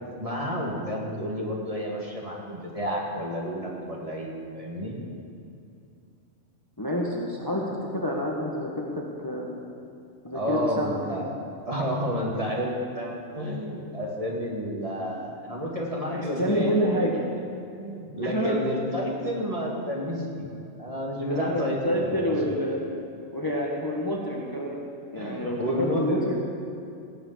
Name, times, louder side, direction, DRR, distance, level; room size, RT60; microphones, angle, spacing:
voice 1, 0.2-5.0 10.3-11.3 11.7-17.3 17.7-20.5 20.8-22.4 25.2-26.3, equal, 25° right, -2 dB, 2.2 m, -30 dB
voice 2, 6.8-9.5 10.2-11.0 16.1-17.1 18.2-18.6 21.3-22.8 23.3-24.8 25.1-26.3, equal, 15° left, -2 dB, 1.5 m, -28 dB
18.5 x 7.1 x 8.4 m, 2.6 s
omnidirectional pair, 1.4 m